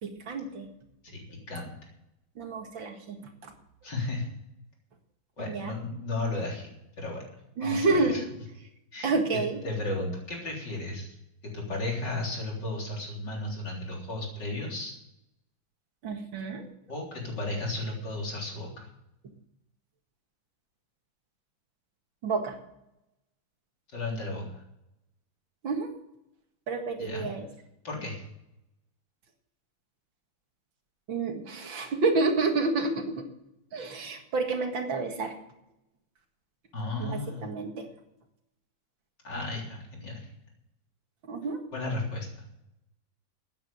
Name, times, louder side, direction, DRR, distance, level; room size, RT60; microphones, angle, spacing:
voice 1, 0.0-0.7 2.4-3.5 5.4-5.7 7.6-8.3 9.0-9.6 16.0-16.7 22.2-22.6 25.6-25.9 26.7-27.5 31.1-33.2 33.7-35.3 37.0-37.9 41.2-41.6, right 3 dB, 65° right, 4 dB, 2.6 m, -29 dB
voice 2, 1.0-1.7 3.8-4.3 5.4-6.7 7.0-7.2 7.6-8.2 8.9-11.2 11.4-14.9 16.9-18.9 23.9-24.6 27.0-27.3 27.8-28.3 36.7-37.5 39.2-40.3 41.7-42.5, left 2 dB, 55° left, -1 dB, 4.3 m, -34 dB
14.0 x 9.3 x 6.9 m, 0.84 s
omnidirectional pair, 2.3 m